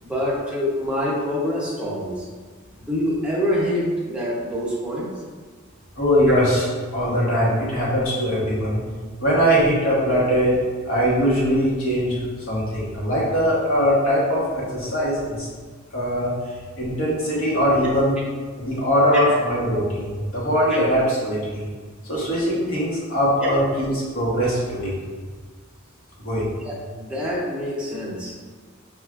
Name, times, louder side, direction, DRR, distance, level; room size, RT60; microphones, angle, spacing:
voice 1, 0.0-2.3 2.8-5.1 26.3-28.3, equal, 5° right, -6 dB, 0.7 m, -26 dB
voice 2, 6.0-6.7 6.9-8.8 9.2-10.6 10.8-15.5 15.9-16.3 16.8-18.2 18.6-21.6 22.0-25.0 26.2-26.5, equal, 75° left, -6 dB, 1.1 m, -21 dB
5.8 x 2.4 x 2.4 m, 1.5 s
head